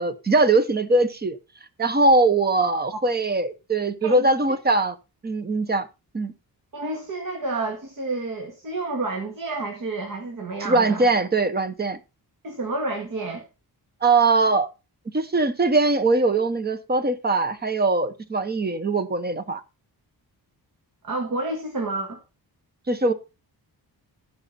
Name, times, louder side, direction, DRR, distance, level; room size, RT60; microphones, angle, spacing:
voice 1, 0.0-1.4 1.8-4.9 5.2-5.9 6.1-6.3 10.6-12.0 14.0-14.7 15.1-19.6 22.9-23.1, right 3 dB, 25° right, 0.8 m, -21 dB
voice 2, 6.7-11.1 12.4-13.5 21.0-22.2, right 2 dB, 55° right, 2.0 m, -29 dB
15.0 x 5.6 x 4.1 m
wide cardioid pair, 180°, 39 cm